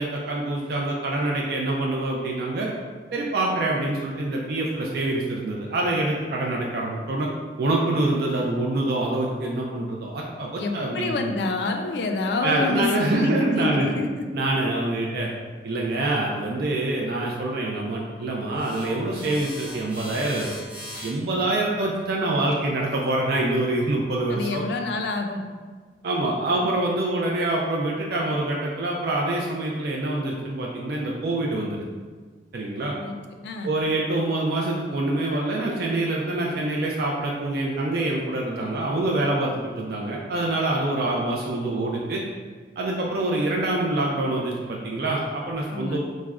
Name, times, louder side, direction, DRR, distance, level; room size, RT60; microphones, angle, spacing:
voice 1, 0.0-2.7 3.1-7.3 7.6-11.3 12.4-13.9 14.3-15.3 15.6-20.5 21.0-24.6 26.0-31.8 32.5-32.9 33.6-42.2 42.8-46.0, right 2 dB, 55° right, -2 dB, 0.3 m, -25 dB
voice 2, 10.6-14.3 24.3-25.4 33.0-33.2 33.4-33.7 45.7-46.0, left 3 dB, 65° left, 4 dB, 0.3 m, -27 dB
sound 1, 18.5-23.6, equal, 10° right, 0.7 m, -41 dB
4.7 x 2.0 x 2.3 m, 1.5 s
head